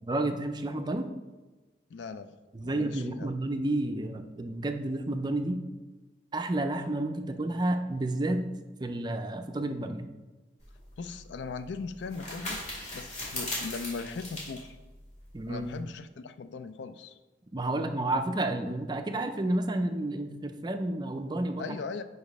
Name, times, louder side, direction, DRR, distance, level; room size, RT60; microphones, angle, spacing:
voice 1, 0.0-1.1 2.5-5.6 6.3-8.4 8.8-10.1 15.3-15.7 17.5-21.8, right 1 dB, 25° right, 7 dB, 0.4 m, -30 dB
voice 2, 1.9-2.4 2.6-3.3 11.0-12.6 12.9-14.8 15.5-17.2 21.6-22.0, left 4 dB, 75° left, 12 dB, 0.4 m, -39 dB
sound 1, 10.6-15.8, left 1 dB, 40° left, 2.3 m, -39 dB
5.0 x 4.8 x 5.3 m, 1.2 s
head